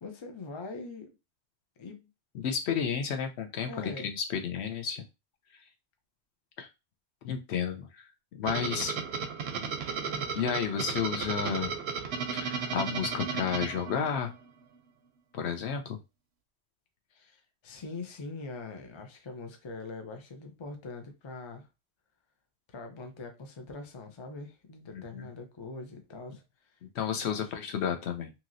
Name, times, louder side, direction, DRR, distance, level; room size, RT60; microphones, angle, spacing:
voice 1, 0.0-1.1 1.8-2.1 2.7-2.8 3.7-4.1 8.5-9.0 10.0-10.3 17.1-21.7 22.7-26.7 27.3-27.4, left 3 dB, 50° left, 0.3 m, -43 dB
voice 2, 2.3-5.0 6.6-6.7 7.2-8.1 8.4-8.9 10.3-11.7 12.3-14.3 15.3-16.0 24.9-25.3 26.9-28.3, left 7 dB, 65° left, 0.8 m, -32 dB
sound 1, 8.4-14.5, right 5 dB, 65° right, 0.7 m, -34 dB
2.9 x 2.8 x 2.5 m
omnidirectional pair, 1.3 m